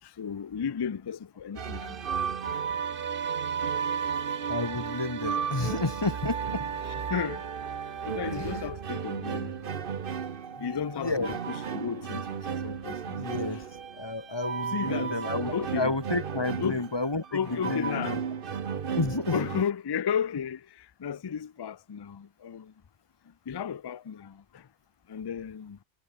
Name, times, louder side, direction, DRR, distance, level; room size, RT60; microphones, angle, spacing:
voice 1, 0.0-2.0 2.5-2.7 3.6-3.7 6.8-7.5 8.0-9.5 10.6-13.2 13.5-13.6 14.7-15.1 15.5-16.0 16.6-16.8 17.3-18.2 19.3-22.7 23.2-24.7 25.1-25.8, left 7 dB, 40° left, 0.3 m, -34 dB
sound 1, 1.6-19.6, right 7 dB, 55° right, 1.1 m, -34 dB
voice 2, 4.5-7.1 8.4-8.5 10.5-11.4 13.1-13.6 14.0-17.2 17.5-18.2 19.0-19.4, left 2 dB, 25° left, 1.2 m, -31 dB
omnidirectional pair, 1.1 m